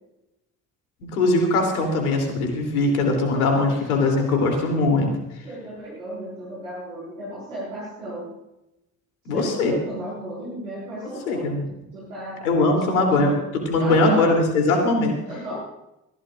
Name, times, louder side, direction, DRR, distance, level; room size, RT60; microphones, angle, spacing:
voice 1, 1.1-5.1 9.3-9.7 11.3-11.6 12.4-15.1, left 2 dB, 80° left, 2 dB, 3.3 m, -21 dB
voice 2, 5.4-8.3 9.3-11.5 11.9-13.4 13.8-14.3 15.3-15.6, right 1 dB, 85° right, -7 dB, 5.3 m, -34 dB
22.0 x 15.5 x 2.6 m, 0.91 s
figure-of-eight pair, 50°, 43 cm